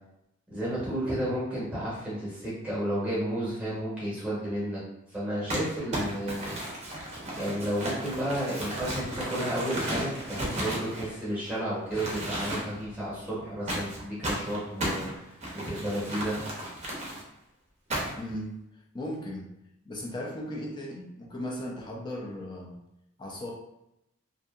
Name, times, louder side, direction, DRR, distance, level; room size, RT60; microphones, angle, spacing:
voice 1, 0.5-4.8 5.1-6.6 7.3-15.3 15.6-16.4, right 1 dB, 5° right, -9 dB, 0.9 m, -32 dB
Crumpling crinkling, 5.5-11.5 11.9-12.9 13.7-17.2 17.9-18.3, right 1 dB, 30° right, 0.6 m, -34 dB
voice 2, 18.1-19.5 19.8-22.8 23.2-23.5, left 1 dB, 20° left, -2 dB, 0.4 m, -37 dB
2.7 x 2.5 x 2.3 m, 0.85 s
head